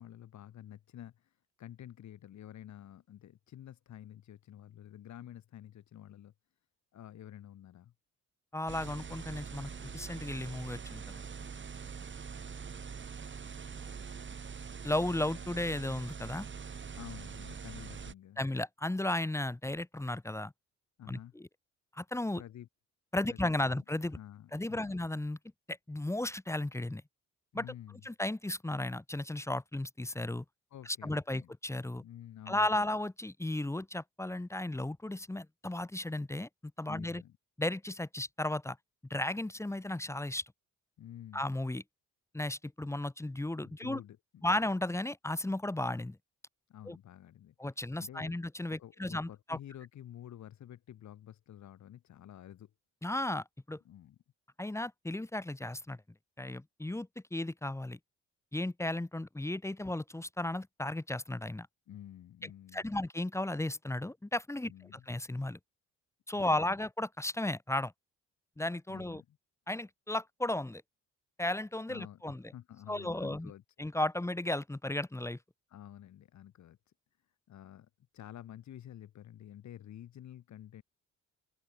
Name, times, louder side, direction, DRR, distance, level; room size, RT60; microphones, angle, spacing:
voice 1, 0.0-6.3 6.9-7.9 16.9-18.4 21.0-21.3 22.3-22.7 23.2-23.8 24.1-25.0 27.5-28.0 30.7-31.5 32.0-32.9 36.9-37.4 41.0-41.5 43.6-44.2 46.7-47.5 48.0-48.3 48.7-52.7 53.8-54.2 61.9-63.0 64.6-65.1 66.3-66.7 68.9-69.4 71.9-73.6 75.7-76.8 77.5-80.8, left 11 dB, 70° left, 3.2 m, -50 dB
voice 2, 8.5-11.2 14.8-16.5 18.4-20.5 21.1-21.5 21.9-22.4 23.1-24.2 24.5-25.4 25.7-27.0 27.5-27.6 28.0-30.4 31.0-32.0 32.5-36.5 36.8-37.2 37.6-38.8 39.1-40.4 41.3-41.8 42.3-44.0 44.4-46.2 46.9-47.0 47.6-49.6 53.0-53.8 54.6-56.0 56.4-58.0 58.5-61.7 62.4-65.6 66.3-67.9 68.6-69.2 69.7-70.8 71.4-72.4 72.9-73.5 73.8-75.4, left 1 dB, 10° left, 1.1 m, -35 dB
sound 1, 8.7-18.1, right 6 dB, 40° right, 3.1 m, -44 dB
open air
cardioid pair, 90°, 30 cm